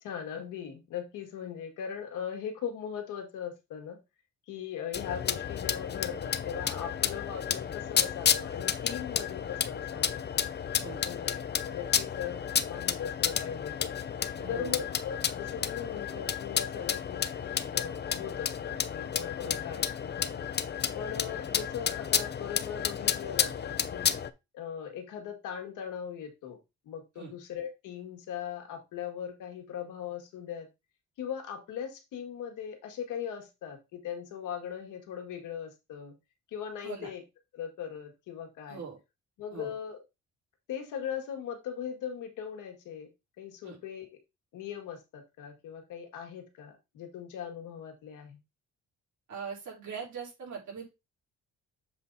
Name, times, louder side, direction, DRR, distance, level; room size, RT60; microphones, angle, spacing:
voice 1, 0.0-4.0 4.5-10.2 11.0-13.9 14.5-20.5 20.9-24.2 24.5-26.6 26.8-30.7 31.2-36.1 36.5-37.2 37.5-38.8 39.4-40.0 40.7-43.1 43.4-44.2 44.5-48.4, left 8 dB, 90° left, 4 dB, 1.8 m, -39 dB
sound 1, 4.9-24.3, left 8 dB, 35° left, 0.6 m, -31 dB
voice 2, 10.7-11.1 14.4-14.9 19.4-19.6 27.2-27.3 36.8-37.1 38.7-39.0 39.5-39.7 43.6-43.8 49.3-50.9, right 6 dB, 70° right, -3 dB, 4.5 m, -41 dB
7.4 x 3.7 x 4.0 m, 0.24 s
cardioid pair, 90°, 30 cm